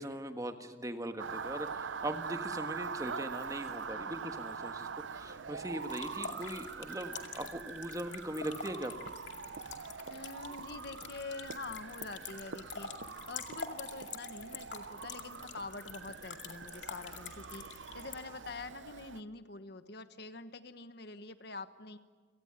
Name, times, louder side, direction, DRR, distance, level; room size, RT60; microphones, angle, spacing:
voice 1, 0.0-9.1, right 1 dB, 20° right, 7 dB, 1.5 m, -40 dB
Motor vehicle (road) / Siren, 1.2-19.2, right 5 dB, 85° right, 0.7 m, -44 dB
sound 1, 5.8-18.1, left 6 dB, 75° left, 2.3 m, -47 dB
sound 2, 8.6-16.6, equal, 35° left, 7.1 m, -65 dB
voice 2, 10.1-12.9 13.3-22.0, left 3 dB, 60° left, 10 dB, 1.2 m, -46 dB
29.5 x 18.5 x 9.0 m, 1.5 s
head